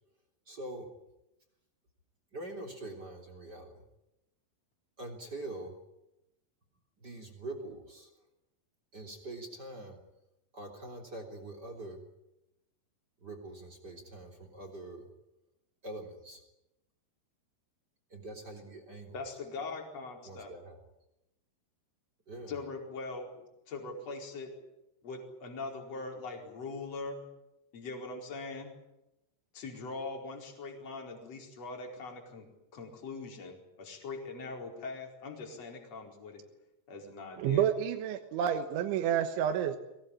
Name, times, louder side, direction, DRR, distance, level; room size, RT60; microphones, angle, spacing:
voice 1, 0.5-0.9 2.3-3.8 5.0-5.7 7.0-8.1 8.9-10.0 10.5-12.0 13.2-15.1 15.8-16.4 18.1-19.2 20.2-20.8 22.3-22.5, right 2 dB, 25° right, 5 dB, 3.5 m, -44 dB
voice 2, 19.1-20.5 22.5-24.5 25.0-27.2 27.7-28.7 29.5-32.5 32.7-36.4 36.9-37.7, left 3 dB, 35° left, 2 dB, 5.3 m, -41 dB
voice 3, 37.4-39.8, right 9 dB, 75° right, 6 dB, 3.6 m, -29 dB
24.0 x 19.5 x 10.0 m, 0.90 s
omnidirectional pair, 5.7 m